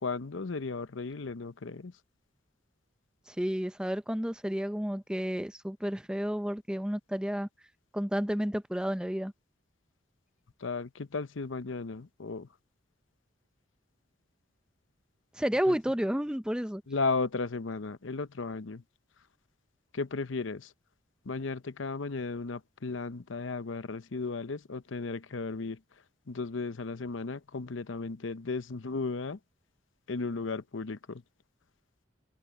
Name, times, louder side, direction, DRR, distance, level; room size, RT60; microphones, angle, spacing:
voice 1, 0.0-1.9 10.6-12.5 15.7-15.8 16.9-18.8 19.9-20.7 21.2-25.8 26.3-29.4 30.1-31.2, left 3 dB, 90° left, 0.8 m, -35 dB
voice 2, 3.3-7.5 7.9-9.3 15.3-16.8, equal, 5° right, 0.7 m, -31 dB
head